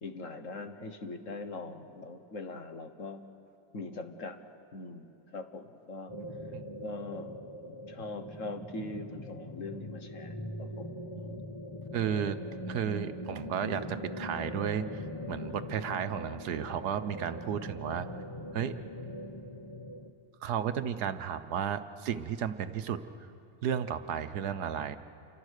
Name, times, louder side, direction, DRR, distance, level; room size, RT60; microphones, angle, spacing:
voice 1, 0.0-3.2 3.7-4.4 4.7-6.1 6.8-7.4 7.7-11.4, left 3 dB, 50° left, 7 dB, 1.5 m, -42 dB
sound 1, 6.1-20.1, left 1 dB, 20° left, 0.7 m, -42 dB
voice 2, 11.9-12.4 12.7-18.1 18.5-18.7 20.4-23.0 23.6-25.0, right 8 dB, 70° right, 10 dB, 1.4 m, -33 dB
28.5 x 24.5 x 6.5 m, 2.8 s
omnidirectional pair, 1.8 m